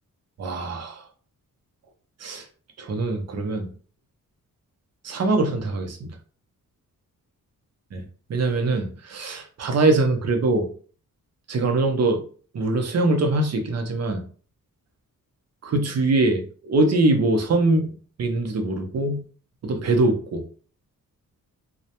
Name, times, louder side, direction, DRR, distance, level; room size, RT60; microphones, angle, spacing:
voice 1, 0.4-1.0 2.2-2.4 2.8-3.7 5.0-6.1 7.9-8.0 8.3-10.7 11.5-12.2 12.5-14.2 15.6-17.9 18.2-19.2 19.6-20.4, right 2 dB, 50° right, 4 dB, 0.6 m, -22 dB
2.2 x 2.1 x 2.8 m, 0.42 s
cardioid pair, 95°, 34 cm